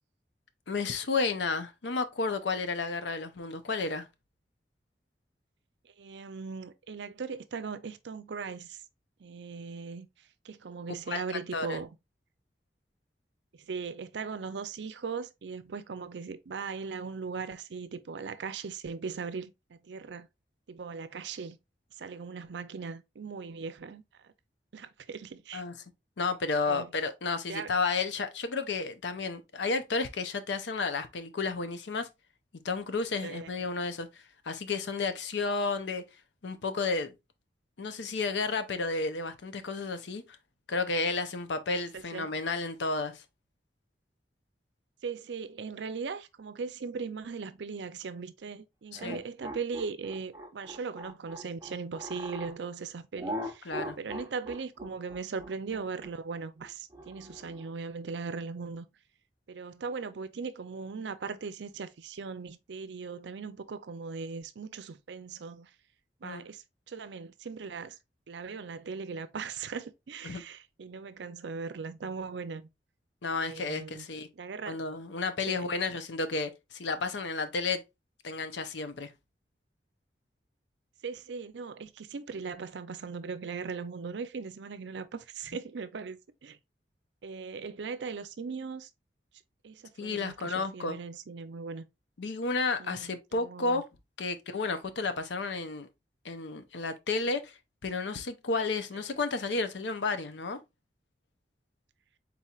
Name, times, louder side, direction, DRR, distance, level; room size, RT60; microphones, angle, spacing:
voice 1, 0.7-4.1 11.1-11.8 25.5-25.7 26.2-32.1 32.6-36.0 36.4-37.1 37.8-40.2 40.7-43.2 48.9-49.2 53.7-54.0 66.2-66.4 70.2-70.4 73.2-74.3 74.7-77.8 78.2-79.1 90.0-91.0 92.2-93.8 94.2-95.9 96.2-97.6 97.8-100.6, left 4 dB, 85° left, 0.6 m, -32 dB
voice 2, 5.8-8.8 9.2-10.1 10.4-11.9 13.7-20.3 20.7-21.6 22.0-24.3 24.7-25.6 26.7-26.9 27.5-27.7 33.2-33.7 41.9-42.3 45.0-58.9 59.5-65.7 66.2-68.0 68.3-72.7 73.4-74.1 74.3-74.8 75.5-75.7 81.0-86.6 87.2-88.9 89.6-91.8 92.8-93.8, right 5 dB, 85° right, 0.5 m, -39 dB
sound 1, 48.9-52.6 53.2-57.7, equal, 15° right, 0.7 m, -40 dB
4.3 x 4.0 x 2.4 m
head